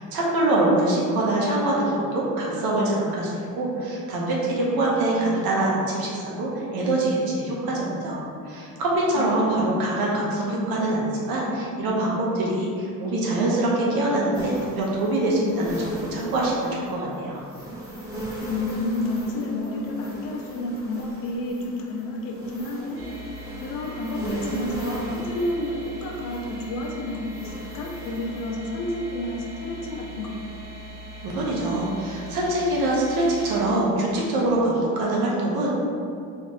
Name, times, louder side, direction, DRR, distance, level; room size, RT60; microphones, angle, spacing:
voice 1, 0.0-17.4 31.2-35.7, right 1 dB, 75° right, -4 dB, 1.0 m, -24 dB
voice 2, 9.2-10.0 18.4-23.0 23.6-30.4, left 1 dB, 65° left, 0 dB, 0.7 m, -30 dB
sound 1, 14.3-28.5, equal, 10° right, 1.3 m, -37 dB
sound 2, 22.9-33.6, equal, 35° right, 0.9 m, -41 dB
4.3 x 2.9 x 3.0 m, 2.4 s
cardioid pair, 140°, 36 cm